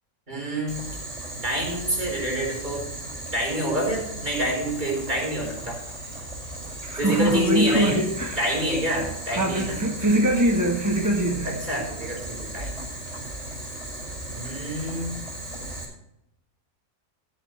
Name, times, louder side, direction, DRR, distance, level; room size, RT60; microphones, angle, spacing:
voice 1, 0.3-0.8 1.4-2.9 3.3-5.8 7.0-8.0 8.4-9.8 11.5-12.8 14.3-15.2, equal, 30° right, -1 dB, 4.4 m, -27 dB
Boiling, 0.7-15.8, right 1 dB, 55° right, 5.8 m, -36 dB
voice 2, 6.8-8.5 9.3-11.6, right 1 dB, 15° right, 1 dB, 1.1 m, -23 dB
13.5 x 11.0 x 3.2 m, 0.83 s
omnidirectional pair, 1.5 m